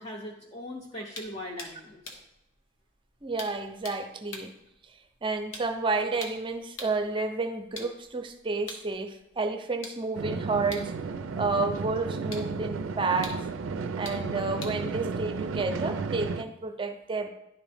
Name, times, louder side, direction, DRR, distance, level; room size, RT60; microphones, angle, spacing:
voice 1, 0.0-2.2, left 1 dB, 30° left, -1 dB, 0.6 m, -40 dB
sound 1, 1.1-7.1 7.6-16.1, left 3 dB, 90° left, 1.1 m, -47 dB
voice 2, 3.2-4.5 5.2-10.9 11.4-13.4 14.0-17.3, right 3 dB, 25° right, 7 dB, 0.5 m, -30 dB
sound 2, 10.1-16.4, right 4 dB, 85° right, 0.4 m, -33 dB
10.5 x 3.6 x 3.4 m, 0.86 s
head